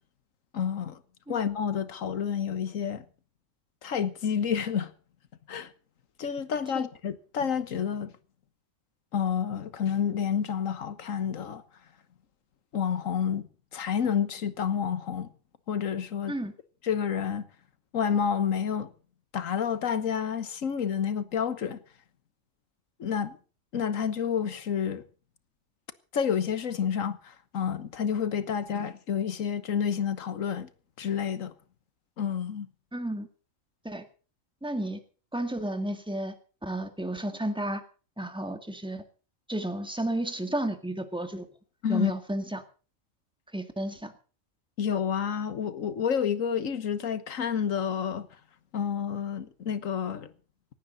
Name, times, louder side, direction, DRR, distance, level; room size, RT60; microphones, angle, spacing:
voice 1, 0.5-1.0 1.3-3.0 3.8-4.9 5.5-5.7 6.2-8.1 9.1-11.6 12.7-15.3 15.7-16.3 16.8-17.4 17.9-18.9 19.3-21.8 23.0-23.4 23.7-25.0 26.1-30.7 31.0-31.5 32.2-32.7 41.8-42.1 44.8-48.3 48.7-50.3, left 7 dB, 90° left, 1.6 m, -29 dB
voice 2, 32.9-33.3 33.8-34.1 34.6-35.0 35.3-36.4 36.6-37.8 38.2-39.0 39.5-41.5 41.9-42.6 43.5-44.1, right 1 dB, 5° right, 2.0 m, -32 dB
18.5 x 16.0 x 4.1 m
omnidirectional pair, 1.3 m